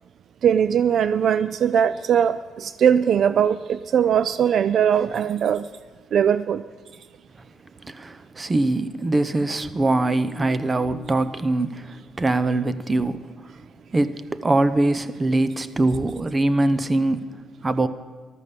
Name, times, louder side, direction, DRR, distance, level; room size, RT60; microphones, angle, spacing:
voice 1, 0.4-5.6 6.1-6.6, right 8 dB, 60° right, 0.4 m, -20 dB
voice 2, 7.8-13.3 13.9-17.3 17.6-17.9, right 2 dB, 25° right, 0.8 m, -22 dB
14.5 x 12.5 x 6.9 m
cardioid pair, 90°, 0 cm